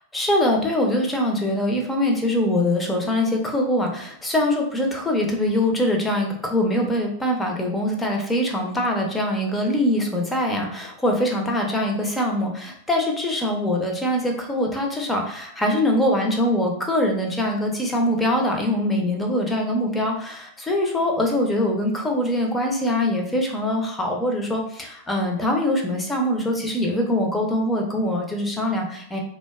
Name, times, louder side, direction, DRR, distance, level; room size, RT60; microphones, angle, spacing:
voice 1, 0.1-29.2, left 1 dB, 10° left, 1 dB, 0.5 m, -23 dB
2.5 x 2.2 x 2.3 m, 0.65 s
hypercardioid pair, 105°, 0 cm